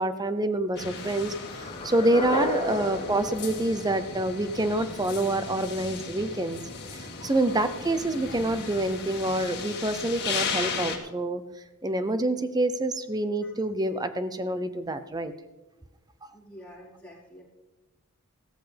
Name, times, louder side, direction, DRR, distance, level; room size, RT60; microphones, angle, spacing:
voice 1, 0.0-6.6 6.9-11.4 11.8-15.3 16.2-16.3, right 1 dB, 15° right, 11 dB, 0.6 m, -27 dB
sound 1, 0.8-11.0, left 5 dB, 50° left, 1.9 m, -36 dB
sound 2, 1.5-4.6, left 1 dB, 30° left, 1.3 m, -33 dB
voice 2, 3.0-3.3 7.8-8.3 13.4-13.5 16.3-17.4, equal, 5° left, -7 dB, 4.7 m, -48 dB
15.5 x 13.5 x 3.4 m, 1.1 s
head